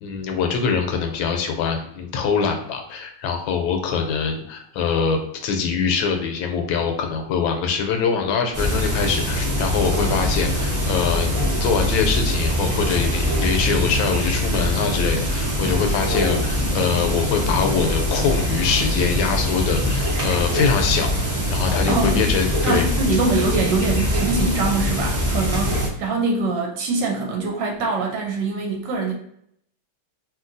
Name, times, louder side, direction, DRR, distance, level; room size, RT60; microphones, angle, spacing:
voice 1, 0.0-11.3 11.6-22.9, left 6 dB, 80° left, 4 dB, 1.4 m, -23 dB
sound 1, 8.5-25.9, equal, 40° right, 0.6 m, -23 dB
voice 2, 21.9-22.3 22.6-29.1, right 3 dB, 70° right, 1 dB, 1.2 m, -23 dB
3.0 x 2.9 x 2.5 m, 0.71 s
omnidirectional pair, 2.2 m